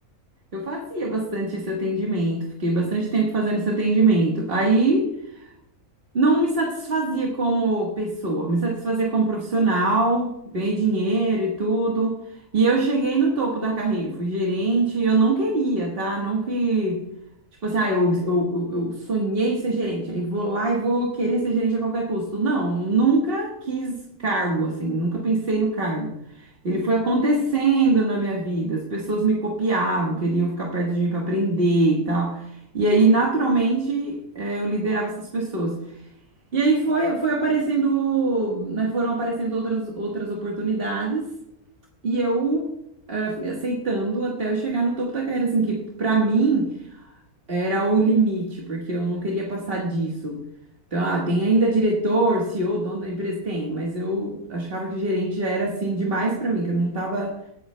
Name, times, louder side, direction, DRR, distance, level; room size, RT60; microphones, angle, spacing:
voice 1, 0.5-5.5 6.1-17.0 17.6-35.8 36.5-41.3 42.0-42.7 43.1-47.0 47.5-50.4 50.9-57.4, right 2 dB, 40° right, -2 dB, 1.6 m, -23 dB
22.0 x 7.9 x 2.2 m, 0.81 s
omnidirectional pair, 1.6 m